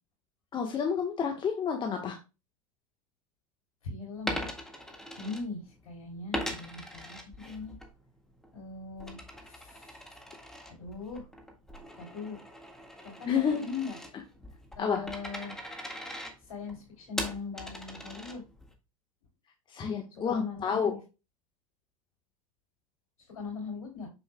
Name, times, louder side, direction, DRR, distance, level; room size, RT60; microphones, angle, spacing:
voice 1, 0.5-2.2 13.3-13.6 14.8-15.0 19.7-20.9, left 6 dB, 30° left, 3 dB, 1.3 m, -29 dB
voice 2, 3.8-4.5 5.2-7.7 8.5-10.2 10.7-11.3 12.0-12.4 13.2-14.0 14.7-15.5 16.4-18.4 20.1-21.0 23.2-24.1, left 4 dB, 90° left, 0 dB, 3.2 m, -40 dB
Coin (dropping), 4.2-5.9 6.3-7.9 8.3-18.7, equal, 5° left, 1.7 m, -41 dB
6.8 x 6.8 x 2.2 m, 0.28 s
hypercardioid pair, 105°, 17 cm